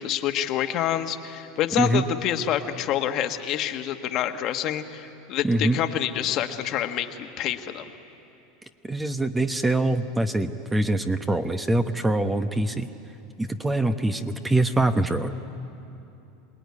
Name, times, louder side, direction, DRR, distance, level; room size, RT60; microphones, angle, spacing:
voice 1, 0.0-7.8, left 11 dB, 50° left, 6 dB, 1.5 m, -27 dB
voice 2, 5.4-5.8 8.8-12.9 13.4-15.3, right 2 dB, 10° right, 8 dB, 1.0 m, -24 dB
27.5 x 19.5 x 9.8 m, 2.8 s
supercardioid pair, 120°, 0 cm